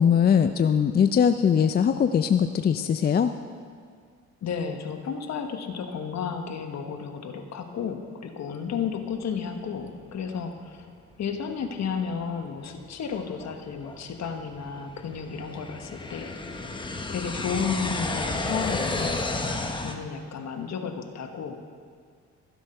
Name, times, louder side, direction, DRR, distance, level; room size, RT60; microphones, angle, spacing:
voice 1, 0.0-3.3, left 7 dB, 35° left, 9 dB, 0.4 m, -21 dB
voice 2, 4.4-10.9 11.2-16.3 17.1-19.2 19.8-21.6, left 6 dB, 60° left, 5 dB, 1.2 m, -32 dB
sound 1, 11.1-11.2 11.8-11.9 12.6-19.9, left 2 dB, 15° left, 0.9 m, -32 dB
13.5 x 7.9 x 5.5 m, 2.1 s
cardioid pair, 90°, 30 cm